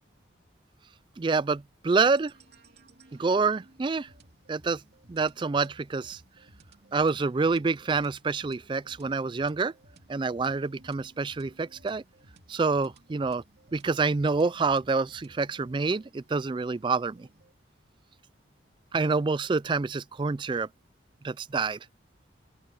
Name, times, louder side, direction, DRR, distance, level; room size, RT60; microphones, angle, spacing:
voice 1, 1.2-2.3 3.1-4.1 4.5-4.8 5.1-6.2 6.9-9.7 10.1-12.0 12.5-13.4 13.7-17.3 18.9-20.7 21.2-21.8, right 4 dB, 25° right, 0.3 m, -27 dB
sound 1, 2.2-17.5, right 2 dB, 55° right, 3.1 m, -58 dB
open air
head